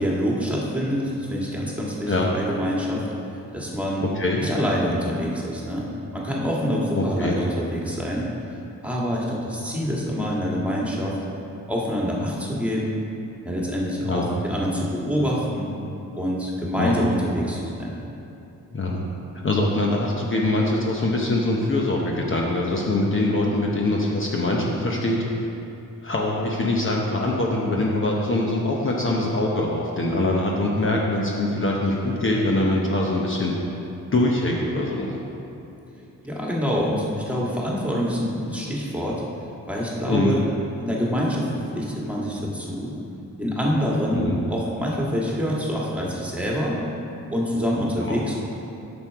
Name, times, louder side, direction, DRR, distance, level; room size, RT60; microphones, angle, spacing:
voice 1, 0.0-3.1 3.5-4.0 4.4-5.9 6.1-8.3 8.8-11.2 11.7-12.9 13.4-15.7 16.2-18.0 36.2-39.2 39.7-40.4 40.8-43.0 43.4-46.8 47.3-48.3, equal, 5° right, -4 dB, 1.7 m, -26 dB
voice 2, 6.9-7.3 14.0-14.3 16.8-17.0 18.7-19.0 19.4-25.2 26.0-33.5 34.1-35.1 40.1-40.3 44.1-44.4 48.0-48.2, left 2 dB, 35° left, -2 dB, 0.9 m, -23 dB
8.5 x 6.2 x 4.6 m, 2.8 s
cardioid pair, 90°, 34 cm